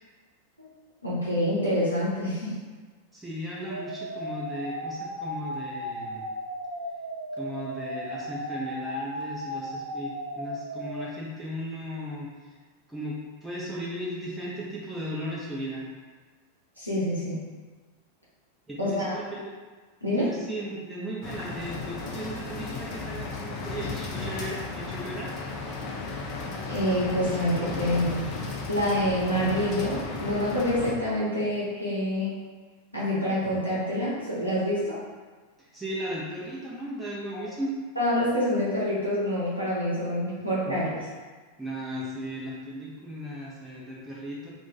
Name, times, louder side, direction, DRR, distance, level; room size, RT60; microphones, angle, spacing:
voice 1, 1.0-2.6 16.8-17.4 18.8-19.1 20.0-20.3 26.7-28.3 28.7-32.3 32.9-35.0 37.3-37.5 38.0-41.0, equal, 90° left, -9 dB, 0.8 m, -27 dB
voice 2, 3.1-6.2 7.4-12.5 12.9-15.9 18.7-19.5 20.2-25.3 35.6-37.8 40.7-40.8 41.6-44.5, equal, 5° right, -7 dB, 0.7 m, -36 dB
sound 1, 3.7-11.1, equal, 75° right, 0.3 m, -35 dB
sound 2, 21.2-30.9, left 3 dB, 40° left, 0.5 m, -35 dB
2.5 x 2.4 x 3.9 m, 1.4 s
figure-of-eight pair, 90°, 0 cm